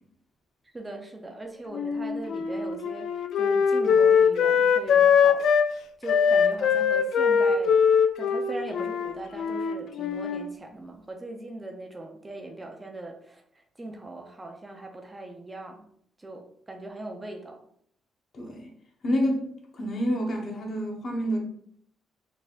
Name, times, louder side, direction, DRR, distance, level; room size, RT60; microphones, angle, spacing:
voice 1, 0.6-3.1 3.4-5.5 6.0-7.8 8.2-15.9 16.2-17.6, right 2 dB, 20° right, 0.6 m, -40 dB
Wind instrument woodwind instrument, 1.7-5.7 6.1-10.5, left 7 dB, 70° left, 0.3 m, -22 dB
voice 2, 18.3-18.7 19.0-19.5 19.7-21.4, equal, 50° left, 1.1 m, -28 dB
4.1 x 3.5 x 2.5 m
cardioid pair, 90°, 0 cm